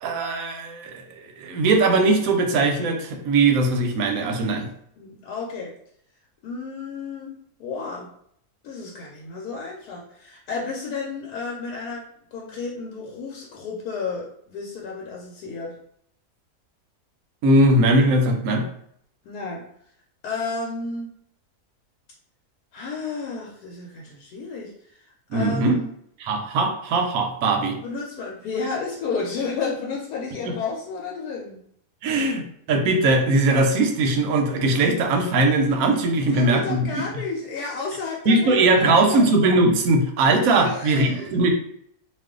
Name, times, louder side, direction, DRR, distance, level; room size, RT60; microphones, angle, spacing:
voice 1, 0.0-4.7 17.4-18.6 25.3-25.8 26.2-27.8 30.4-30.5 32.0-37.0 38.3-41.5, right 2 dB, 70° right, 4 dB, 0.9 m, -20 dB
voice 2, 5.0-5.7 6.4-7.3 7.6-8.1 8.6-12.1 12.3-15.7 19.3-19.6 20.2-21.1 22.7-25.0 25.3-25.9 27.8-31.6 36.1-39.3 40.6-41.3, left 4 dB, 80° left, -2 dB, 1.1 m, -32 dB
2.5 x 2.3 x 3.6 m, 0.68 s
omnidirectional pair, 1.7 m